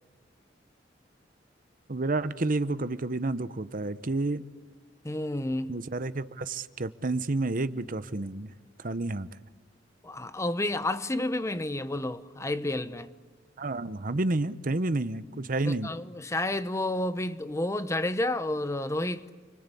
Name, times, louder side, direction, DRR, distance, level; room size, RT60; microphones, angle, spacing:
voice 1, 1.9-4.4 5.7-8.5 8.8-9.3 13.6-15.9, right 2 dB, 50° right, 0.9 m, -30 dB
voice 2, 5.0-5.8 10.0-13.1 15.7-19.3, left 1 dB, 15° left, 0.9 m, -30 dB
29.5 x 24.0 x 8.4 m
head